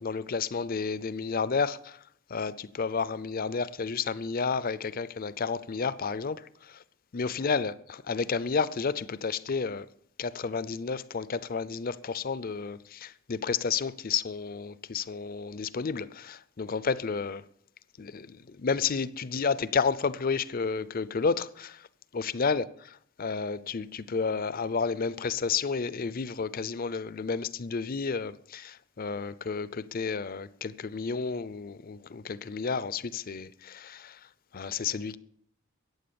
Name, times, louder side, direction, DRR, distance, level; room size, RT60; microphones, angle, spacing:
voice 1, 0.0-2.0 2.3-6.4 7.1-9.9 10.2-17.4 18.0-21.8 22.1-22.6 23.2-34.2 34.5-35.2, left 5 dB, 45° left, 0.5 m, -31 dB
14.5 x 9.5 x 7.0 m
head